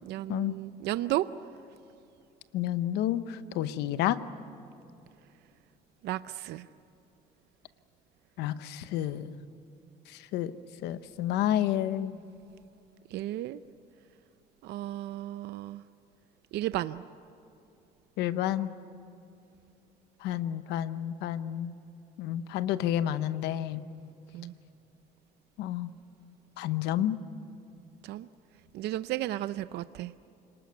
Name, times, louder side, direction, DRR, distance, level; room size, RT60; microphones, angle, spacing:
voice 1, 0.0-1.3 6.0-6.7 13.1-13.6 14.6-15.8 16.5-17.0 24.3-24.5 28.0-28.3 28.7-30.1, right 15 dB, 75° right, 13 dB, 0.6 m, -33 dB
voice 2, 2.5-4.2 8.4-9.3 10.1-10.5 10.8-12.1 18.2-18.7 20.2-21.7 22.2-23.8 25.6-25.9 26.6-27.2, left 12 dB, 90° left, 13 dB, 1.0 m, -30 dB
28.5 x 19.5 x 9.5 m, 2.7 s
cardioid pair, 110°, 17 cm